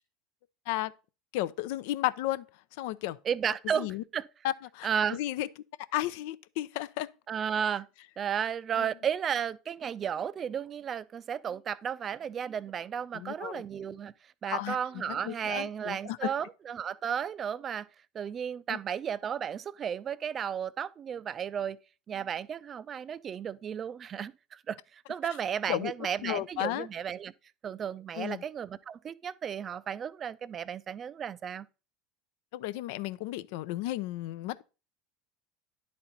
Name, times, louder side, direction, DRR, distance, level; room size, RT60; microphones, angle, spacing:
voice 1, 1.3-2.5 2.8-3.2 3.7-4.0 4.4-5.5 5.9-7.1 8.8-8.9 13.1-13.6 14.5-16.3 18.7-18.8 25.7-25.9 26.2-26.9 28.2-28.4 32.5-34.6, left 15 dB, 70° left, 0.4 m, -33 dB
voice 2, 3.3-3.9 4.1-4.2 4.8-5.2 7.3-7.9 8.2-14.1 14.4-17.9 18.1-21.8 22.1-27.3 27.6-31.7, right 8 dB, 35° right, 0.4 m, -33 dB
10.5 x 4.2 x 4.0 m
hypercardioid pair, 85°, 0 cm